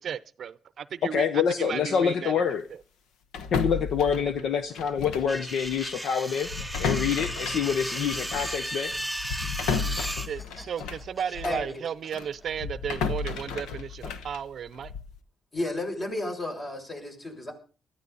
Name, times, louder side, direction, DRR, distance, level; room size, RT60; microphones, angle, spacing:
voice 1, 0.0-1.3 1.6-2.4 4.4-4.5 10.3-14.9, right 8 dB, 55° right, 0.6 m, -34 dB
voice 2, 1.1-2.7 3.5-6.5 6.8-8.9, left 7 dB, 70° left, 1.0 m, -26 dB
sound 1, 3.3-5.4 5.7-5.9 6.4-11.7 12.1-15.2, left 5 dB, 90° left, 1.1 m, -33 dB
sound 2, 4.3-6.0 6.2-9.3 9.7-12.8 13.3-13.8, equal, 20° left, 7.4 m, -53 dB
sound 3, 5.3-10.3, right 1 dB, ahead, 0.9 m, -34 dB
voice 3, 11.4-11.8 15.5-17.5, left 1 dB, 35° left, 6.4 m, -32 dB
19.5 x 14.0 x 4.1 m
cardioid pair, 90°, 0 cm